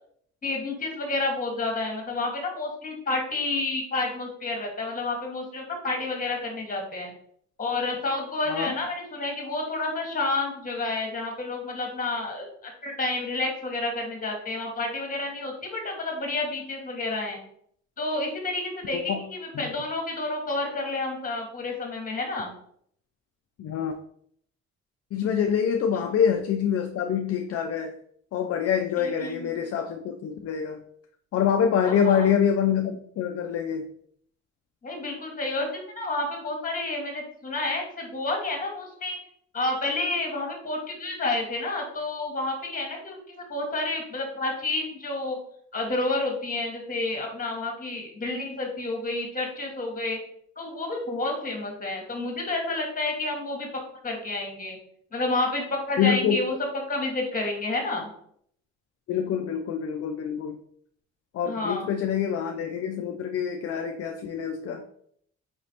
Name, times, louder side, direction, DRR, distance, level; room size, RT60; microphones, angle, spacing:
voice 1, 0.4-7.1 7.6-17.4 18.0-22.5 25.9-26.1 29.0-29.6 31.8-32.3 34.8-39.2 39.5-45.4 45.7-50.2 50.6-53.7 54.0-54.8 55.1-58.1 61.4-61.9, left 2 dB, 30° left, 1 dB, 1.6 m, -30 dB
voice 2, 23.6-23.9 25.1-27.9 28.3-30.8 31.3-33.8 56.0-56.4 59.1-60.6 61.3-64.8, left 8 dB, 55° left, 5 dB, 0.5 m, -25 dB
5.0 x 3.1 x 2.8 m, 0.66 s
cardioid pair, 90°, 30 cm